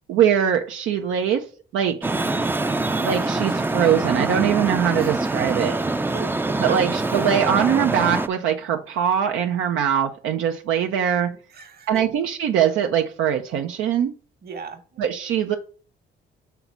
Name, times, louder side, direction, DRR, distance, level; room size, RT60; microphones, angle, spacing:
voice 1, 0.1-1.5 1.7-2.1 3.0-5.8 6.6-11.3 11.9-14.1 15.0-15.6, right 9 dB, 85° right, 0.7 m, -22 dB
Traffic noise roadway noise, 2.0-8.3, right 2 dB, 10° right, 0.4 m, -24 dB
voice 2, 6.1-6.8 11.3-12.1 14.4-15.0, right 5 dB, 50° right, 1.5 m, -37 dB
5.8 x 4.0 x 5.9 m
cardioid pair, 90°, 20 cm